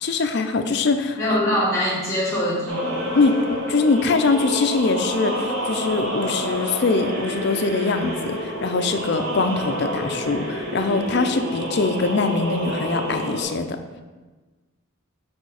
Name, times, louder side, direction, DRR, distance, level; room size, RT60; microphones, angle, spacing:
voice 1, 0.0-1.4 3.1-13.8, left 4 dB, 50° left, 7 dB, 0.4 m, -23 dB
voice 2, 1.1-3.0, equal, 15° left, -7 dB, 1.6 m, -23 dB
sound 1, 2.7-13.4, equal, 65° right, 1.5 m, -28 dB
4.9 x 4.4 x 4.8 m, 1.3 s
head